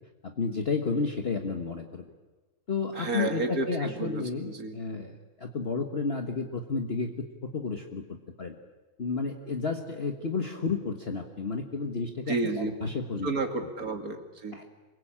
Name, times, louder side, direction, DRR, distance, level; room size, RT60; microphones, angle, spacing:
voice 1, 0.2-2.1 2.7-7.1 7.4-8.6 9.0-13.3 13.6-13.7 14.5-14.6, left 4 dB, 40° left, 4 dB, 1.6 m, -32 dB
voice 2, 3.0-4.8 12.3-12.7 13.2-14.6, right 3 dB, 65° right, 5 dB, 2.9 m, -31 dB
26.5 x 23.0 x 8.8 m, 1.2 s
omnidirectional pair, 1.7 m